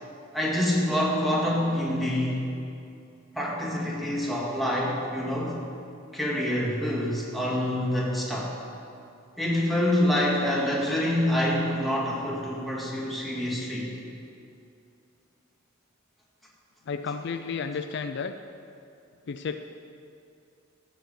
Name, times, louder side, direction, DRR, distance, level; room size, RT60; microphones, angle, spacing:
voice 1, 0.3-2.5 3.3-5.6 6.1-8.5 9.4-13.9, left 1 dB, ahead, -5 dB, 2.1 m, -26 dB
voice 2, 16.9-18.3 19.3-19.6, left 5 dB, 60° left, 8 dB, 0.4 m, -32 dB
14.5 x 5.9 x 7.1 m, 2.5 s
head